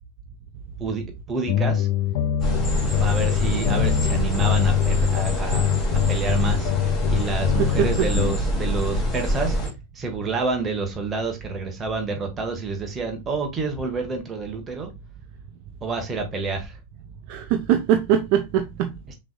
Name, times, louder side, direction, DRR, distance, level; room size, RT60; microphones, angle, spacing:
voice 1, 0.8-1.9 3.0-9.6 9.9-14.9 15.8-16.8 19.1-19.2, right 3 dB, 20° right, 1.5 m, -28 dB
sound 1, 1.5-8.4, left 11 dB, 45° left, 0.5 m, -24 dB
sound 2, 2.4-9.7, equal, 15° left, 2.4 m, -25 dB
voice 2, 7.6-8.1 17.3-18.9, right 9 dB, 45° right, 0.5 m, -22 dB
5.9 x 3.4 x 2.2 m
figure-of-eight pair, 90°, 0 cm